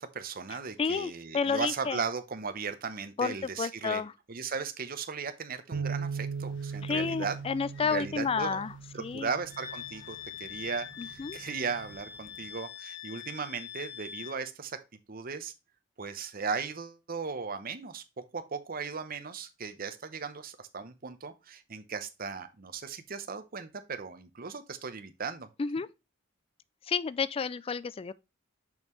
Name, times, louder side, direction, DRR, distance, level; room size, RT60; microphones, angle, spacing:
voice 1, 0.0-4.0 4.3-7.4 7.8-8.6 8.9-14.8 15.1-15.5 16.0-18.0 18.3-25.5, right 5 dB, 45° right, 0.8 m, -37 dB
voice 2, 0.8-2.0 3.2-4.1 6.8-8.7 9.0-9.3 11.0-11.4 25.6-25.9 26.9-28.1, left 5 dB, 30° left, 0.3 m, -31 dB
Bass guitar, 5.7-10.1 10.8-12.0, right 5 dB, 90° right, 0.6 m, -39 dB
sound 1, 6.1-12.5, left 2 dB, 65° left, 1.2 m, -59 dB
Wind instrument woodwind instrument, 9.5-14.4, left 9 dB, 50° left, 1.4 m, -44 dB
6.3 x 5.4 x 3.1 m
head